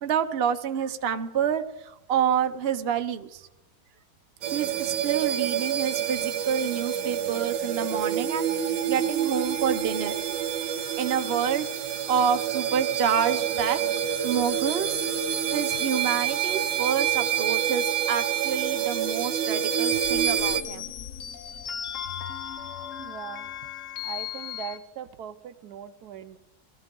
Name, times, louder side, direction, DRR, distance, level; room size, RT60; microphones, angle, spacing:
voice 1, 0.0-3.5 4.5-10.1 11.0-13.8 14.2-15.0 15.5-20.9, right 8 dB, 55° right, 8 dB, 0.7 m, -28 dB
sound 1, 4.4-20.6, right 9 dB, 85° right, 1.5 m, -27 dB
sound 2, 5.5-20.8, equal, 90° left, 5.3 m, -53 dB
sound 3, 19.9-24.8, left 8 dB, 55° left, 1.0 m, -36 dB
voice 2, 23.0-23.5 24.0-26.4, right 9 dB, 70° right, 11 dB, 1.1 m, -40 dB
18.5 x 13.5 x 3.8 m, 0.95 s
omnidirectional pair, 1.9 m